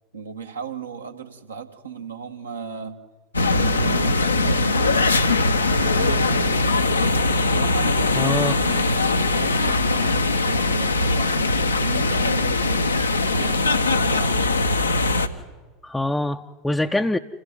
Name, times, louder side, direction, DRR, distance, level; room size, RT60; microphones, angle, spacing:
voice 1, 0.1-3.0 3.5-5.1 5.7-6.8 7.4-12.9 13.3-14.6, right 6 dB, 80° right, 3 dB, 1.9 m, -35 dB
sound 1, 3.3-15.3, left 2 dB, 85° left, 1.2 m, -21 dB
voice 2, 8.2-8.6 15.8-17.2, left 1 dB, 5° left, 4 dB, 0.7 m, -24 dB
27.5 x 15.5 x 9.4 m, 1.3 s
figure-of-eight pair, 80°, 0 cm